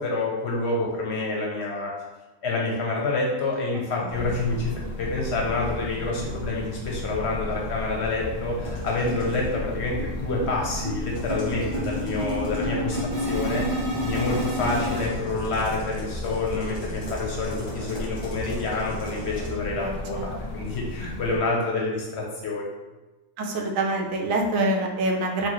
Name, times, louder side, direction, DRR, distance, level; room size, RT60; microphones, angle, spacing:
voice 1, 0.0-1.9 2.4-4.7 5.0-22.7, left 3 dB, 60° left, -2 dB, 0.8 m, -28 dB
sound 1, 4.1-21.4, left 1 dB, 85° left, 0.3 m, -34 dB
sound 2, 7.8-7.9 8.2-8.3 8.6-8.8 9.1-15.0, equal, 55° right, 1.2 m, -30 dB
sound 3, 8.6-9.5 11.0-12.7 14.1-19.5, equal, 20° left, 0.9 m, -40 dB
voice 2, 19.8-20.3 20.5-20.6 23.4-25.5, right 2 dB, 75° right, 2 dB, 0.9 m, -26 dB
4.1 x 2.2 x 3.0 m, 1.1 s
omnidirectional pair, 1.4 m